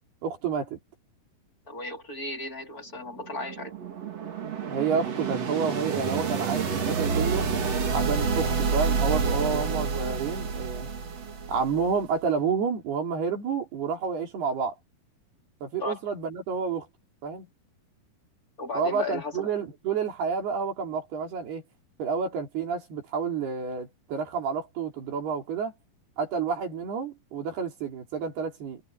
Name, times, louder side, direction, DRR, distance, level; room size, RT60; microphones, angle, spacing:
voice 1, 0.2-0.8 4.7-7.5 7.9-10.9 11.5-14.8 15.6-16.9 17.2-17.5 18.8-21.6 22.0-25.7 26.2-28.8, right 6 dB, 70° right, 5.8 m, -29 dB
voice 2, 1.7-3.8 15.8-16.0 18.6-19.5, left 2 dB, 25° left, 3.4 m, -35 dB
sound 1, 3.1-12.0, right 5 dB, 40° right, 3.3 m, -28 dB
omnidirectional pair, 4.7 m